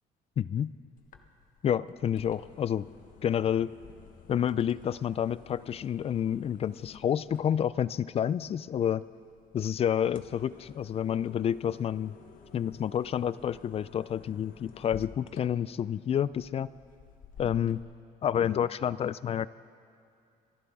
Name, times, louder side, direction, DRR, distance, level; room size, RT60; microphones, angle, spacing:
voice 1, 0.4-0.7 1.6-2.8 3.2-3.7 4.3-9.0 9.5-12.1 12.5-16.7 17.4-17.8 18.2-19.5, left 9 dB, 35° left, 18 dB, 0.4 m, -29 dB
sound 1, 1.0-17.8, left 6 dB, 55° left, 1.1 m, -52 dB
26.5 x 11.0 x 3.6 m, 2.5 s
cardioid pair, 110°, 17 cm